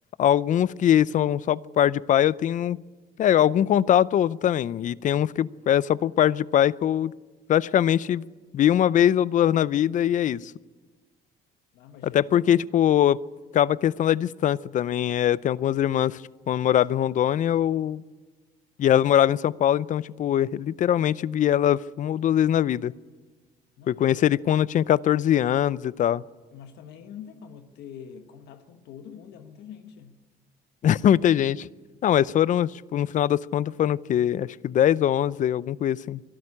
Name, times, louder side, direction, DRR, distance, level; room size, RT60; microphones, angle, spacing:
voice 1, 0.2-2.8 3.2-7.1 7.5-8.2 8.5-10.5 12.0-13.2 13.5-16.2 16.5-18.0 18.8-22.9 23.9-26.2 30.8-31.7 32.0-36.2, left 10 dB, 50° left, 20 dB, 0.6 m, -22 dB
voice 2, 11.7-12.4 23.8-24.3 26.5-30.2, left 8 dB, 80° left, 7 dB, 1.4 m, -45 dB
24.0 x 12.5 x 9.8 m, 1.3 s
cardioid pair, 110°, 17 cm